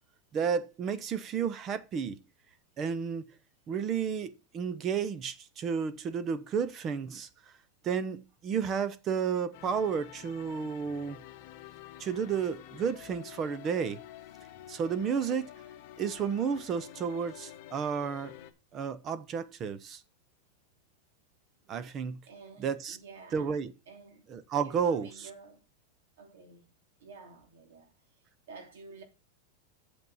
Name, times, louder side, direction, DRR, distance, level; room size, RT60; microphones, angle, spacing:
voice 1, 0.3-2.2 2.8-3.3 3.7-7.3 7.8-11.2 12.0-14.0 14.7-15.5 16.0-18.3 18.7-20.0 21.7-22.2 22.6-23.0 23.3-23.7 24.3-25.3, right 6 dB, 20° right, 0.6 m, -32 dB
sound 1, 9.5-18.5, left 12 dB, 45° left, 1.2 m, -49 dB
voice 2, 22.2-23.5 23.9-24.2 24.5-25.6 26.2-26.7 27.0-28.0 28.5-29.0, right 4 dB, 85° right, 2.8 m, -51 dB
8.2 x 6.0 x 5.4 m
supercardioid pair, 175°, 0 cm